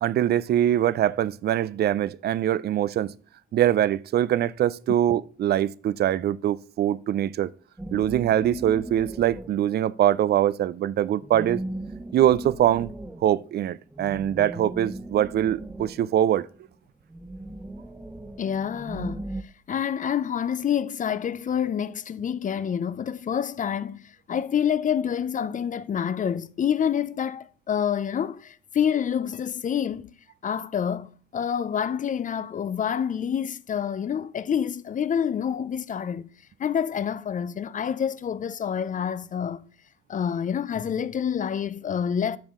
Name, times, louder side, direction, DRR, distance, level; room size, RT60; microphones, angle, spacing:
voice 1, 0.0-3.1 3.5-7.5 7.9-11.6 12.1-12.9 13.2-16.5, right 11 dB, 55° right, 0.4 m, -23 dB
sound 1, 7.8-9.8 11.2-16.5 17.1-19.4, right 1 dB, 10° right, 0.6 m, -37 dB
voice 2, 18.4-19.2 19.7-30.1 30.4-36.3 36.6-39.6 40.1-42.4, left 8 dB, 40° left, 0.5 m, -27 dB
10.5 x 6.2 x 3.7 m
cardioid pair, 90°, 20 cm